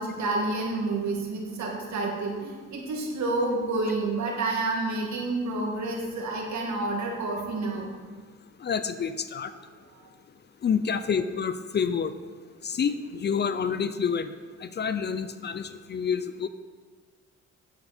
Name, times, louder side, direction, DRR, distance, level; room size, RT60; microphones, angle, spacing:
voice 1, 0.0-7.9, right 2 dB, 65° right, -1 dB, 2.2 m, -29 dB
voice 2, 8.6-9.5 10.6-12.1 12.6-14.3 14.6-16.5, left 6 dB, 35° left, 12 dB, 0.5 m, -28 dB
9.4 x 7.9 x 4.3 m, 1.5 s
cardioid pair, 90°, 30 cm